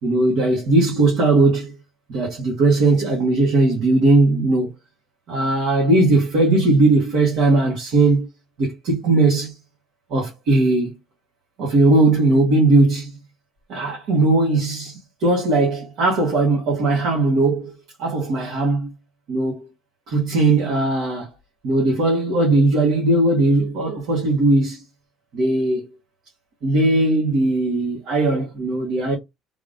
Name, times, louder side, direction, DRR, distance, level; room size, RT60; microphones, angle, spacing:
voice 1, 0.0-1.7 2.1-4.7 5.3-8.3 8.6-9.5 10.1-11.0 11.6-13.2 13.7-17.7 18.0-18.9 19.3-19.7 20.1-21.3 21.6-24.8 25.3-25.9 26.6-29.1, right 2 dB, 55° right, 1.4 m, -18 dB
3.5 x 3.4 x 2.6 m
cardioid pair, 180°, 0 cm